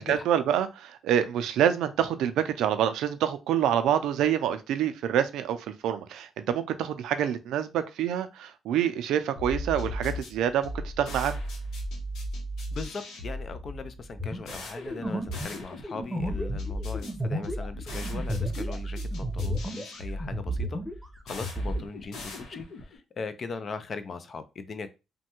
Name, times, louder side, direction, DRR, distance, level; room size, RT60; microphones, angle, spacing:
voice 1, 0.0-5.6 5.8-11.4, right 10 dB, 85° right, 10 dB, 0.3 m, -26 dB
sound 1, 9.4-23.0, equal, 80° left, 0.9 m, -36 dB
voice 2, 12.7-20.8 21.2-24.9, left 4 dB, 45° left, 11 dB, 0.4 m, -39 dB
sound 2, 14.2-19.9 20.2-21.8, equal, 10° right, 0.8 m, -33 dB
3.2 x 2.2 x 2.9 m, 0.27 s
cardioid pair, 90°, 0 cm